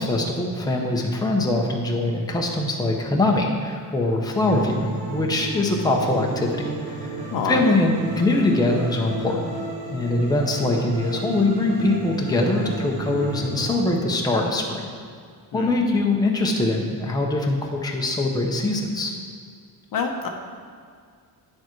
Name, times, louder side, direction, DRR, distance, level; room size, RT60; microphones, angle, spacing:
voice 1, 0.0-6.5 6.9-9.5 9.9-14.9 15.5-19.1, left 2 dB, 10° left, 0 dB, 0.9 m, -23 dB
sound 1, 4.3-13.7, right 2 dB, 70° right, 2.7 m, -32 dB
voice 2, 7.3-7.6 15.5-15.7 19.9-20.3, left 6 dB, 55° left, 3 dB, 1.0 m, -26 dB
9.6 x 7.2 x 4.6 m, 2.1 s
cardioid pair, 160°, 40 cm